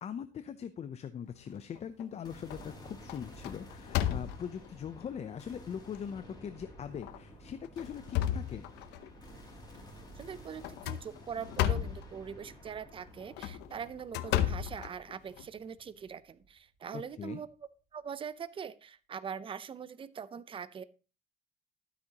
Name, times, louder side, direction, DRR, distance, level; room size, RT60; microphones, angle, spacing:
voice 1, 0.0-8.7 16.9-17.4, left 8 dB, 40° left, 11 dB, 0.7 m, -41 dB
sound 1, 1.5-2.1 2.5-2.8 3.1-4.7 5.4-5.5 5.9-6.0 6.9-7.2 7.6-9.1 10.6-12.1 13.2-15.5, left 12 dB, 90° left, 0.7 m, -33 dB
sound 2, 2.2-16.5, equal, 25° left, 4.8 m, -52 dB
voice 2, 10.2-17.5 17.9-20.8, right 7 dB, 30° right, 15 dB, 0.6 m, -42 dB
12.5 x 8.3 x 2.9 m, 0.33 s
cardioid pair, 110°, 17 cm